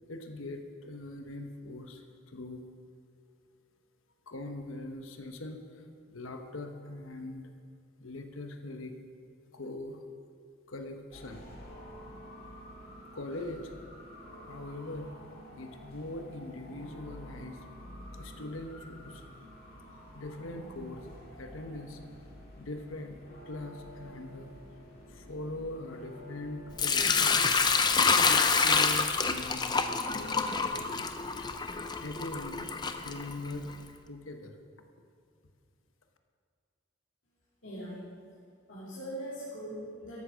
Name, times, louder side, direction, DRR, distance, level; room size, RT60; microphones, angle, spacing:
voice 1, 0.1-2.6 4.3-5.8 6.1-7.5 8.0-9.0 9.5-10.0 10.7-11.4 13.1-13.7 14.5-15.1 15.5-17.6 18.1-19.2 20.1-21.1 21.4-22.0 22.6-23.2 23.5-24.5 25.1-27.4 27.9-32.7 33.0-33.7 34.1-34.5, left 2 dB, 85° left, 5 dB, 1.1 m, -42 dB
sound 1, 11.1-27.1, equal, 45° left, 2.2 m, -49 dB
Sink (filling or washing) / Liquid, 26.8-33.7, left 5 dB, 20° left, 0.5 m, -27 dB
voice 2, 37.6-38.0 38.7-40.2, equal, 65° left, -11 dB, 3.1 m, -40 dB
13.5 x 8.3 x 6.3 m, 2.2 s
head